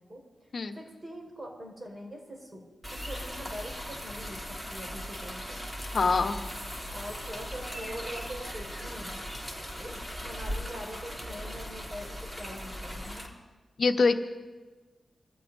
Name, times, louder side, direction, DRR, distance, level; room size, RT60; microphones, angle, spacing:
voice 1, 0.0-0.5 0.7-5.6 6.9-9.3 9.8-13.3, equal, 35° right, 0 dB, 5.2 m, -43 dB
sound 1, 2.8-13.3, equal, 15° right, 3.2 m, -38 dB
voice 2, 5.9-6.4 13.8-14.1, left 4 dB, 70° left, 6 dB, 1.1 m, -24 dB
24.5 x 15.0 x 2.8 m, 1.3 s
cardioid pair, 60°, 0 cm